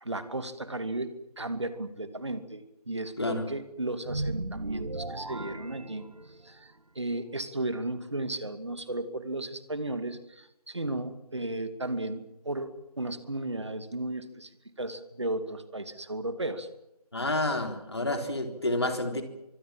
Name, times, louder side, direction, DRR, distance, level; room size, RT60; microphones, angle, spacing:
voice 1, 0.0-14.5 14.8-16.7, right 2 dB, 45° right, 11 dB, 2.5 m, -35 dB
sound 1, 4.0-6.6, right 2 dB, 70° right, 1.5 m, -36 dB
voice 2, 17.1-19.2, left 2 dB, 40° left, 5 dB, 4.0 m, -29 dB
25.0 x 23.5 x 7.6 m, 0.87 s
figure-of-eight pair, 170°, 20 cm